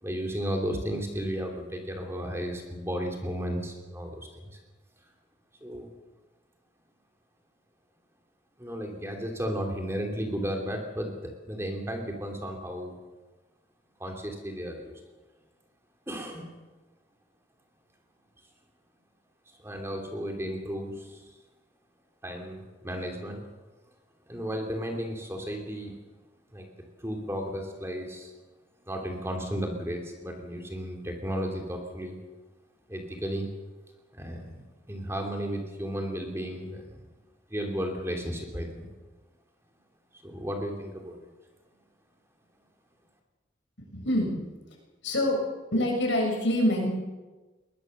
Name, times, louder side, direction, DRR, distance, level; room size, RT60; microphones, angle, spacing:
voice 1, 0.0-4.3 5.6-5.9 8.6-12.9 14.0-14.9 16.1-16.6 19.6-21.2 22.2-23.4 24.3-25.9 26.5-26.7 27.0-28.3 28.9-32.2 32.9-33.5 34.1-36.9 37.5-38.9 40.2-41.2, equal, 15° right, 2 dB, 3.0 m, -34 dB
voice 2, 43.8-44.4 45.0-45.4 45.7-46.9, left 1 dB, 80° left, 0 dB, 7.0 m, -26 dB
22.0 x 20.0 x 6.8 m, 1.2 s
head